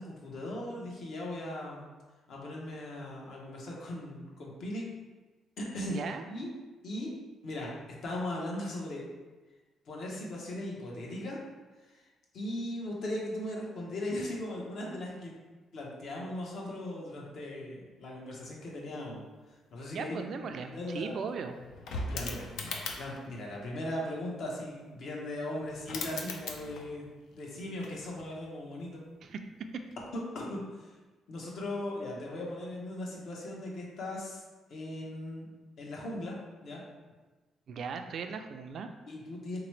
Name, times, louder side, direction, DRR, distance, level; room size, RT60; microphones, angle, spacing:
voice 1, 0.0-1.8 2.3-4.9 5.6-6.5 6.8-7.1 7.4-7.7 8.0-9.0 9.9-11.4 11.8-12.0 12.3-15.3 15.7-19.2 19.7-20.2 20.6-21.1 22.1-29.0 30.1-30.9 31.3-34.4 34.7-35.5 35.8-36.4 36.6-36.8 39.1-39.6, left 1 dB, 65° left, -3 dB, 0.9 m, -38 dB
voice 2, 5.9-6.2 19.9-21.6 29.2-29.4 29.7-29.8 37.7-38.9, right 5 dB, 60° right, 6 dB, 0.3 m, -38 dB
sound 1, 20.5-20.6 20.8-23.3 25.3-25.4 25.7-27.1 27.3-28.5 29.9-30.1, left 3 dB, 80° left, 0.5 m, -40 dB
3.5 x 2.9 x 3.1 m, 1.2 s
cardioid pair, 90°, 0 cm